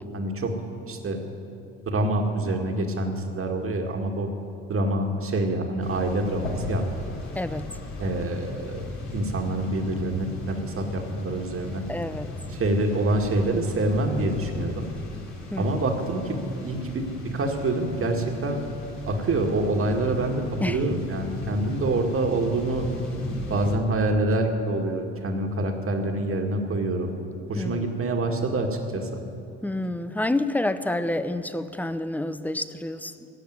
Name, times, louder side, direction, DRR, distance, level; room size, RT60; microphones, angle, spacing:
voice 1, 0.1-0.5 0.9-1.2 1.9-4.3 4.7-6.8 8.0-8.9 9.1-11.8 12.5-14.9 15.6-18.6 19.1-22.9 23.5-27.1 27.5-29.2, right 2 dB, 45° right, 3 dB, 1.9 m, -26 dB
sound 1, 5.8-23.8, left 2 dB, 60° left, 3.0 m, -37 dB
voice 2, 7.3-7.7 11.9-12.3 15.5-15.7 20.6-20.8 27.6-27.9 29.6-33.3, left 1 dB, 5° left, 12 dB, 0.7 m, -28 dB
16.5 x 6.5 x 9.4 m, 2.8 s
hypercardioid pair, 65°, 32 cm